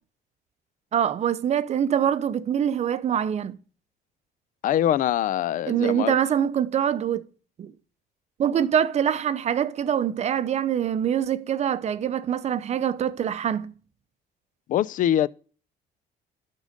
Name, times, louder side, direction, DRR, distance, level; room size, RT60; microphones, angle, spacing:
voice 1, 0.9-3.6 5.7-7.2 7.6-7.7 8.4-13.7, right 9 dB, 40° right, 0.6 m, -24 dB
voice 2, 4.6-6.1 14.7-15.3, left 11 dB, 50° left, 0.4 m, -23 dB
11.0 x 3.8 x 5.1 m
cardioid pair, 110°, 17 cm